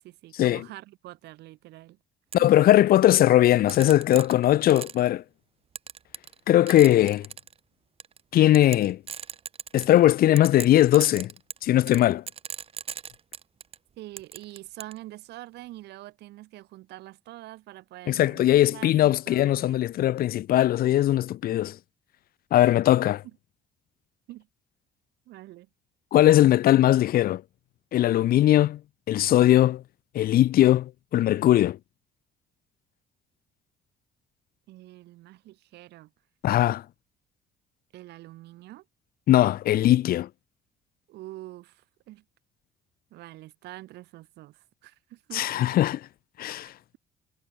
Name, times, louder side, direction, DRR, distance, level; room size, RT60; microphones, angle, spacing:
voice 1, 0.0-2.0 2.4-2.5 14.0-19.9 22.6-22.7 24.3-24.5 25.3-25.7 34.7-36.1 37.9-38.9 41.1-42.2 43.1-45.5, right 17 dB, 80° right, 3.8 m, -45 dB
voice 2, 2.3-5.2 6.5-7.3 8.3-9.0 9.7-11.3 11.6-12.2 18.1-21.8 22.5-23.2 26.1-27.4 27.9-28.8 29.1-29.8 30.1-31.8 36.4-36.8 39.3-40.3 45.3-46.0 46.4-46.7, left 13 dB, 60° left, 0.9 m, -20 dB
sound 1, 2.3-2.4 3.7-5.1 5.8-6.4 6.7-7.5 8.0-8.2 8.5-10.0 10.4-13.8 14.2-15.0, right 7 dB, 35° right, 0.9 m, -38 dB
cardioid pair, 110°, 17 cm